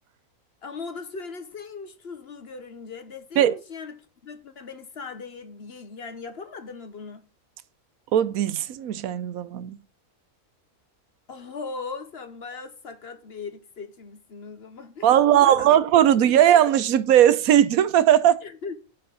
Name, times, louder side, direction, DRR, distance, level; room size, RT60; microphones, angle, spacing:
voice 1, 0.6-7.2 11.3-15.8 18.4-18.8, left 4 dB, 50° left, 1.0 m, -38 dB
voice 2, 8.1-9.8 15.0-18.4, right 11 dB, 75° right, 1.1 m, -18 dB
8.6 x 4.3 x 6.2 m
omnidirectional pair, 1.5 m